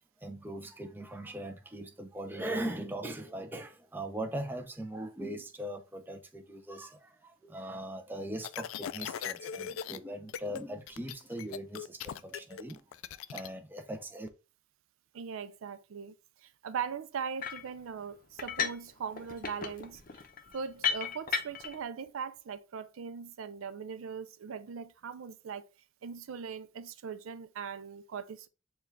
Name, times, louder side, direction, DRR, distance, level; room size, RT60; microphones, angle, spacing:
voice 1, 0.2-12.8 13.3-14.3, right 1 dB, 10° right, 0.5 m, -40 dB
sound 1, 8.4-10.0 10.3-10.6 10.9-13.5, left 8 dB, 85° left, 0.3 m, -39 dB
voice 2, 15.1-20.2 20.5-25.6 26.0-28.5, right 6 dB, 90° right, 0.4 m, -40 dB
sound 2, 17.4-17.7 18.4-18.9 19.2-21.8, left 6 dB, 45° left, 0.6 m, -34 dB
6.9 x 2.3 x 3.1 m
head